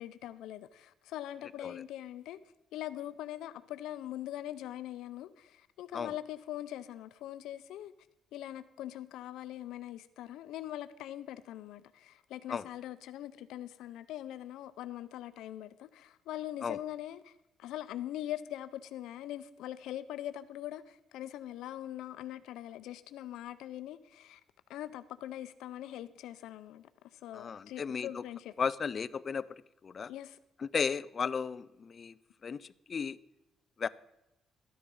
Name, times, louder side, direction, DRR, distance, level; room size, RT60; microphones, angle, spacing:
voice 1, 0.0-2.4 2.7-7.9 8.3-17.3 17.6-24.4 24.7-28.5 30.1-30.4, left 13 dB, 85° left, 0.6 m, -42 dB
voice 2, 27.3-28.2 28.6-30.1 30.6-33.2 33.8-33.9, left 6 dB, 30° left, 0.4 m, -35 dB
13.0 x 10.0 x 5.4 m
cardioid pair, 165°, 0 cm